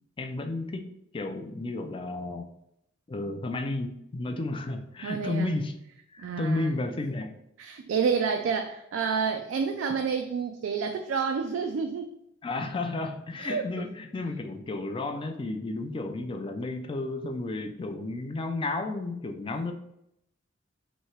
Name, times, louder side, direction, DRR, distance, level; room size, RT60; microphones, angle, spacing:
voice 1, 0.2-2.5 3.1-5.7 6.1-7.3 12.4-19.7, left 2 dB, 25° left, 6 dB, 0.4 m, -32 dB
voice 2, 5.0-5.5 6.2-6.7 7.6-12.2 13.4-13.6, right 5 dB, 90° right, 5 dB, 0.3 m, -29 dB
3.1 x 2.7 x 4.4 m, 0.78 s
head